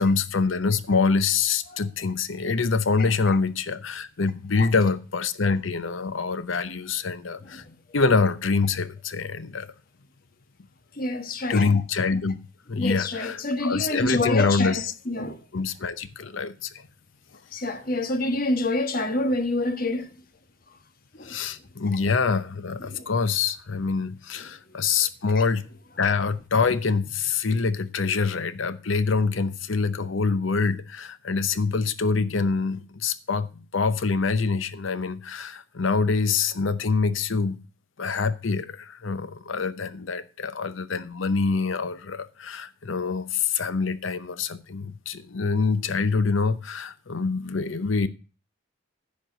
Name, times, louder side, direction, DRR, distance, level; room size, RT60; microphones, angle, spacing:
voice 1, 0.0-7.6 7.9-9.7 11.5-12.4 12.7-14.9 15.5-16.7 21.2-25.7 26.0-37.6 38.0-48.1, left 4 dB, 80° left, 0.8 m, -25 dB
voice 2, 11.0-11.7 12.8-15.4 17.5-20.1 21.2-21.4 22.9-23.1, left 2 dB, 45° left, 1.2 m, -27 dB
10.5 x 4.6 x 7.8 m
head